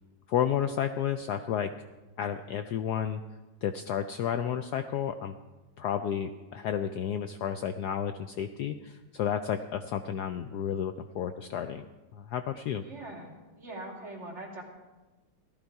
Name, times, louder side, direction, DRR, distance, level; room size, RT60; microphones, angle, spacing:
voice 1, 0.3-1.7 2.2-3.2 3.6-5.3 5.8-11.8 12.1-12.8, left 9 dB, 85° left, 8 dB, 0.8 m, -31 dB
voice 2, 12.7-14.6, right 2 dB, 30° right, -1 dB, 2.9 m, -42 dB
15.5 x 12.5 x 4.6 m, 1.2 s
omnidirectional pair, 2.3 m